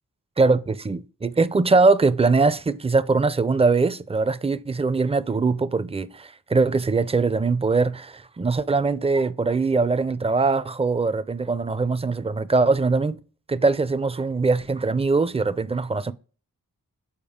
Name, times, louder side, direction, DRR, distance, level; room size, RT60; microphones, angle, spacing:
voice 1, 0.4-13.2 13.5-16.1, right 3 dB, 15° right, 0.4 m, -22 dB
7.2 x 4.6 x 3.5 m
cardioid pair, 45°, 36 cm